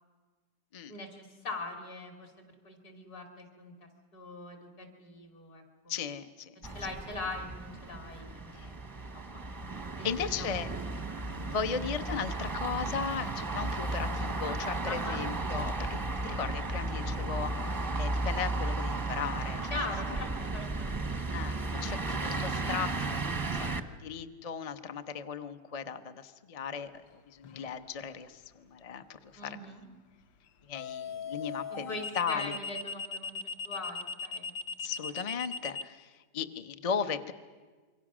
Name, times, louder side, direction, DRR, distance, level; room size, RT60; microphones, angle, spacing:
voice 1, 0.9-3.7 4.1-5.9 6.7-9.4 9.9-10.1 10.4-10.7 11.2-11.9 14.8-15.2 19.7-20.9 29.3-29.9 31.7-34.5, left 2 dB, 65° left, 4 dB, 3.3 m, -42 dB
voice 2, 5.9-6.5 8.6-8.7 10.0-10.7 11.5-15.9 16.2-19.7 21.3-26.9 27.3-29.6 30.7-32.6 34.8-37.3, left 6 dB, 40° left, 8 dB, 0.5 m, -37 dB
sound 1, 6.6-23.8, right 2 dB, 20° right, 0.7 m, -34 dB
sound 2, 27.4-27.8 30.7-35.8, left 5 dB, 80° left, 1.6 m, -38 dB
26.5 x 24.0 x 6.2 m, 1.4 s
omnidirectional pair, 1.8 m